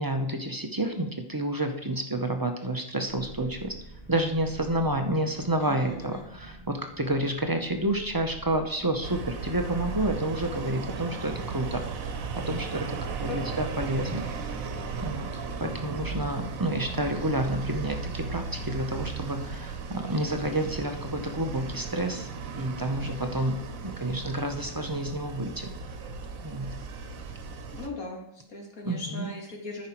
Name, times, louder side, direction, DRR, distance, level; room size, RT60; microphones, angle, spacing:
voice 1, 0.0-3.7 4.1-12.1 12.4-14.3 15.0-22.3 22.6-25.7 26.4-26.7 28.9-29.3, right 1 dB, 20° right, 5 dB, 0.6 m, -29 dB
sound 1, 3.1-11.2, right 2 dB, 10° left, 1.9 m, -48 dB
voice 2, 5.6-6.2 13.3-13.5 27.7-29.9, left 2 dB, 90° left, -1 dB, 2.5 m, -39 dB
sound 2, 9.0-27.9, right 4 dB, 80° right, 1.3 m, -36 dB
13.5 x 5.4 x 4.5 m, 0.77 s
omnidirectional pair, 1.4 m